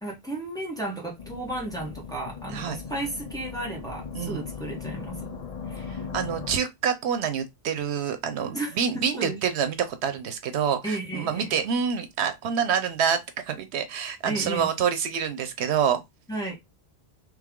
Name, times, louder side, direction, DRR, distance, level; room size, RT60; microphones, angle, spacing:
voice 1, 0.0-5.3 5.7-6.0 8.5-9.4 10.8-11.5 14.3-14.7 16.3-16.5, right 2 dB, 5° left, 1.4 m, -34 dB
sound 1, 1.2-6.6, left 5 dB, 40° left, 0.6 m, -38 dB
voice 2, 6.1-13.2 13.5-16.0, right 7 dB, 85° right, 1.0 m, -27 dB
3.3 x 3.2 x 3.6 m
omnidirectional pair, 1.1 m